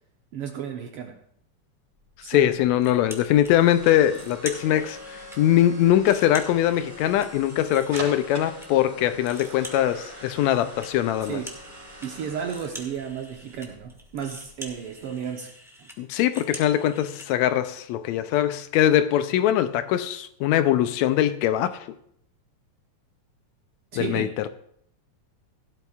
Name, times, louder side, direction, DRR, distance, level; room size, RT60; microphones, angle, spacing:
voice 1, 0.3-1.2 2.2-2.5 11.3-11.5 12.0-15.5 15.8-15.9 23.9-24.3, right 8 dB, 70° right, 1.4 m, -33 dB
sound 1, 2.0-15.1, right 1 dB, 35° right, 3.9 m, -44 dB
voice 2, 2.2-11.4 16.0-21.9 24.0-24.5, left 11 dB, 80° left, 1.7 m, -22 dB
sound 2, 2.8-3.5 3.9-5.4 5.8-8.7 9.0-17.3, equal, ahead, 0.7 m, -44 dB
17.0 x 12.0 x 2.4 m
omnidirectional pair, 3.4 m